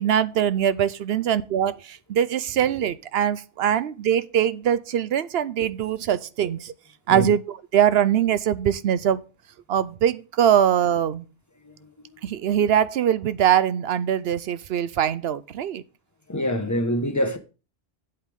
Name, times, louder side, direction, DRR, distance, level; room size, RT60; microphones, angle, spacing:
voice 1, 0.0-6.7 7.1-9.2 9.7-11.3 12.2-15.8, right 9 dB, 65° right, 0.8 m, -22 dB
voice 2, 16.3-17.4, equal, 15° left, 1.1 m, -25 dB
8.3 x 8.2 x 3.5 m
omnidirectional pair, 1.2 m